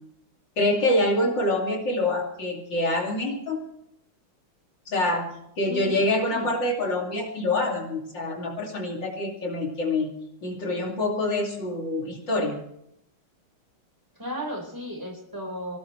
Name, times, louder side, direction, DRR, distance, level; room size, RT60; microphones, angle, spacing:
voice 1, 0.6-3.6 4.9-10.1 10.4-12.6, left 2 dB, 55° left, 0 dB, 3.3 m, -26 dB
voice 2, 5.7-6.5 14.1-15.8, left 1 dB, 10° right, 0 dB, 4.7 m, -35 dB
25.5 x 17.5 x 3.2 m, 0.74 s
omnidirectional pair, 2.4 m